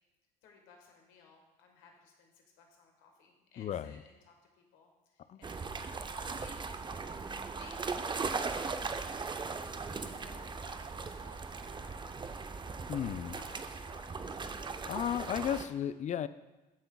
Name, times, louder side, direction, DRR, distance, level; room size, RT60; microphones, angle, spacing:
voice 1, 0.4-6.6 7.3-8.9 9.9-12.5 13.3-14.4, left 4 dB, 70° left, 2 dB, 1.5 m, -59 dB
voice 2, 3.6-4.0 5.3-5.4 12.9-13.4 14.9-16.3, left 9 dB, 35° left, 14 dB, 0.4 m, -34 dB
sound 1, 5.4-15.6, right 4 dB, 20° right, 0.5 m, -39 dB
sound 2, 6.2-14.2, right 4 dB, 65° right, 1.0 m, -61 dB
13.5 x 5.7 x 2.3 m, 1.1 s
hypercardioid pair, 55°, 21 cm